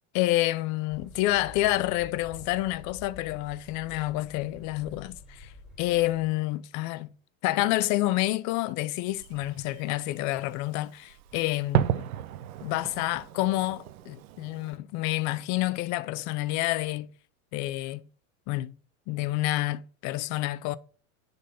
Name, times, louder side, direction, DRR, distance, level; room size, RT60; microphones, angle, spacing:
voice 1, 0.1-5.5 5.8-7.1 7.4-12.1 12.6-17.1 17.5-18.0 18.5-18.7 19.1-20.8, left 17 dB, 45° left, 0.6 m, -28 dB
sound 1, 0.9-6.3, left 2 dB, ahead, 3.2 m, -48 dB
Fireworks, 9.1-14.8, right 11 dB, 80° right, 0.9 m, -34 dB
10.0 x 4.1 x 5.3 m
supercardioid pair, 125°, 42 cm